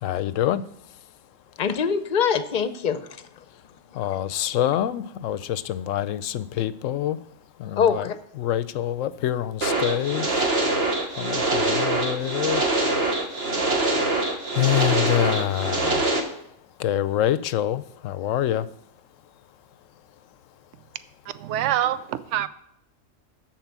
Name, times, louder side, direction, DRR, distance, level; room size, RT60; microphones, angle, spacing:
voice 1, 0.0-0.6 3.9-7.2 7.6-8.1 8.4-10.9 11.2-12.7 14.5-16.1 16.8-18.7, left 12 dB, 85° left, 15 dB, 1.0 m, -26 dB
voice 2, 1.6-3.2 4.0-4.1 7.7-8.2, left 7 dB, 45° left, 11 dB, 0.8 m, -24 dB
sound 1, 9.6-16.2, right 2 dB, 50° right, 1.6 m, -24 dB
voice 3, 21.4-22.5, right 11 dB, 70° right, 14 dB, 0.9 m, -25 dB
13.5 x 4.6 x 8.1 m, 0.74 s
omnidirectional pair, 1.3 m